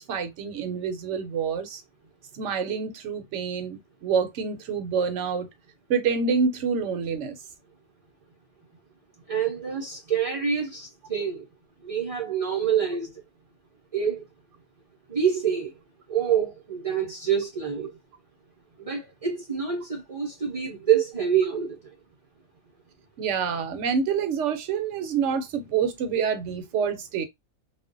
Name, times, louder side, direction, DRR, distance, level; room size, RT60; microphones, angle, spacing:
voice 1, 0.0-1.8 2.4-5.5 5.9-7.4 23.2-27.2, right 6 dB, 70° right, 0.8 m, -27 dB
voice 2, 9.3-11.4 11.8-13.1 13.9-14.2 15.1-15.7 16.1-17.9 18.8-21.8, right 8 dB, 45° right, 0.4 m, -26 dB
2.4 x 2.1 x 2.5 m
omnidirectional pair, 1.4 m